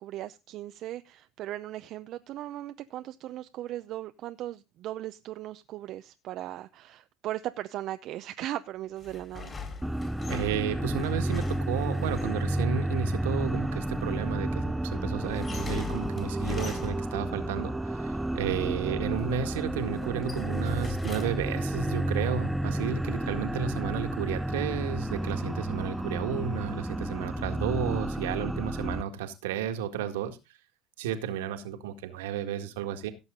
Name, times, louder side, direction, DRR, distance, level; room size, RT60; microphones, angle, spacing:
voice 1, 0.0-9.6, right 13 dB, 60° right, 0.6 m, -38 dB
sound 1, 9.0-12.5 15.2-17.3 18.8-19.3 19.8-21.7, left 5 dB, 25° left, 4.3 m, -41 dB
sound 2, 9.8-29.0, right 1 dB, 5° right, 0.7 m, -31 dB
voice 2, 10.3-30.4 31.0-33.1, right 9 dB, 80° right, 1.8 m, -33 dB
sound 3, 12.8-23.0, right 3 dB, 25° right, 1.3 m, -42 dB
16.5 x 7.3 x 3.8 m
hypercardioid pair, 75°, 0 cm